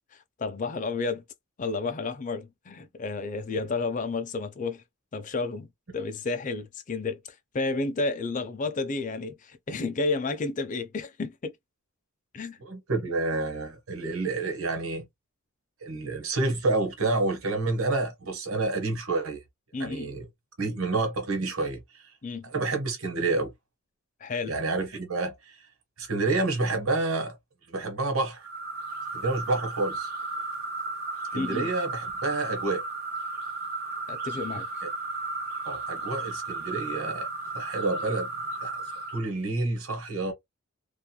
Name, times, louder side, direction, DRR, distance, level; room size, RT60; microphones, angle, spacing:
voice 1, 0.1-1.2 1.6-4.8 5.1-5.7 5.9-11.5 12.3-12.6 19.7-20.1 22.2-22.5 24.2-24.6 31.3-31.7 34.1-34.7, left 3 dB, 35° left, 0.4 m, -31 dB
voice 2, 12.6-15.0 15.8-19.4 19.8-20.2 20.6-22.0 22.4-23.5 24.5-25.6 26.0-27.4 27.7-28.4 29.1-30.1 31.3-32.8 35.6-37.3 37.5-38.3 38.6-38.8 39.1-40.3, right 3 dB, 80° right, 1.2 m, -29 dB
sound 1, 28.4-39.3, right 3 dB, 50° right, 0.8 m, -34 dB
2.9 x 2.4 x 2.2 m
head